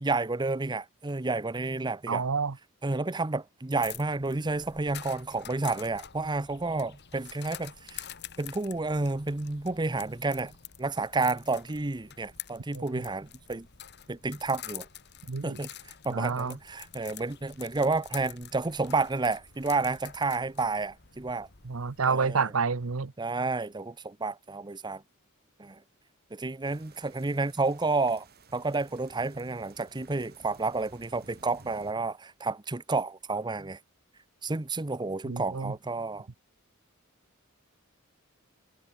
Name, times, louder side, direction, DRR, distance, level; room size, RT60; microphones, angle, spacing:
voice 1, 0.0-2.2 2.8-8.0 8.4-13.7 14.1-14.9 15.4-15.7 16.0-21.5 22.1-22.5 23.2-25.0 25.6-25.8 26.3-28.3 28.5-33.8 34.4-36.3, right 3 dB, 20° right, 0.7 m, -30 dB
voice 2, 2.1-2.6 12.7-13.0 15.3-15.6 16.1-16.6 21.6-23.1 35.2-35.7, right 5 dB, 70° right, 0.8 m, -29 dB
sound 1, 3.8-22.0, left 10 dB, 50° left, 2.1 m, -47 dB
sound 2, 26.6-31.9, right 3 dB, 50° right, 4.7 m, -54 dB
head